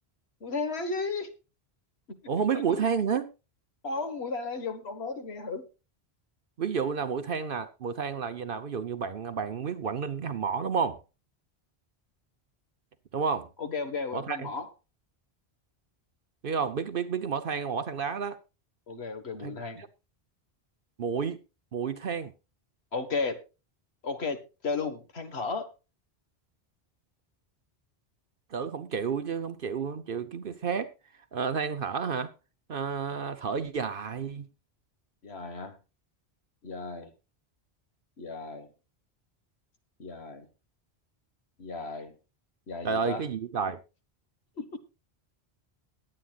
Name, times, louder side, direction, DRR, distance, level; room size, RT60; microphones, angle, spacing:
voice 1, 0.4-1.3 2.1-2.2 2.5-2.9 3.8-5.7 13.6-14.7 18.9-19.8 22.9-23.4 24.0-25.7 35.2-35.8 36.6-37.1 38.2-38.7 40.0-40.5 41.6-42.2 42.7-43.2 44.6-44.8, left 4 dB, 80° left, 1.8 m, -34 dB
voice 2, 2.3-3.3 6.6-11.0 13.1-13.5 14.1-14.5 16.4-18.4 19.4-19.9 21.0-21.4 21.7-22.3 28.5-30.9 31.3-32.3 32.7-34.5 42.8-43.8, right 6 dB, 60° right, 0.9 m, -31 dB
21.0 x 8.7 x 2.4 m
omnidirectional pair, 1.1 m